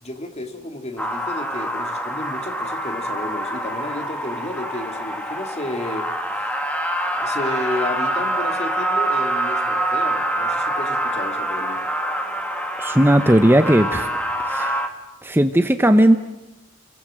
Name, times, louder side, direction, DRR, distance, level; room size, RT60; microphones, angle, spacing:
voice 1, 0.0-6.5 7.2-11.8, left 1 dB, 30° left, 6 dB, 2.6 m, -32 dB
sound 1, 1.0-14.9, right 1 dB, 5° left, 2.3 m, -25 dB
voice 2, 12.8-14.1 14.5-14.8 15.2-16.2, right 1 dB, 10° right, 8 dB, 0.9 m, -16 dB
29.5 x 23.0 x 7.7 m, 1.0 s
head